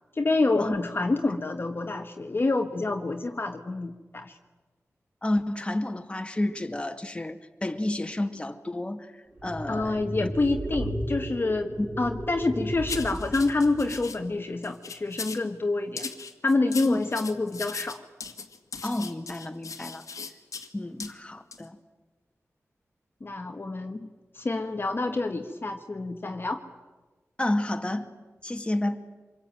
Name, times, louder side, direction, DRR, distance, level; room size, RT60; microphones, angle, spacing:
voice 1, 0.1-4.4 9.7-16.1 16.4-18.0 23.2-24.1 24.3-26.6, left 3 dB, 40° left, 4 dB, 1.7 m, -27 dB
voice 2, 5.2-9.1 9.4-10.3 11.8-11.9 16.8-17.0 18.8-20.0 20.7-21.8 27.4-28.1 28.4-29.0, left 1 dB, 20° left, 5 dB, 2.1 m, -30 dB
sound 1, 9.4-14.2, right 1 dB, 30° right, 5.3 m, -35 dB
sound 2, 12.9-14.2 14.6-15.5 16.0-20.7 21.0-21.1 21.5-21.6, left 5 dB, 90° left, 2.2 m, -38 dB
26.5 x 22.5 x 9.2 m, 1.3 s
wide cardioid pair, 85°, 5 cm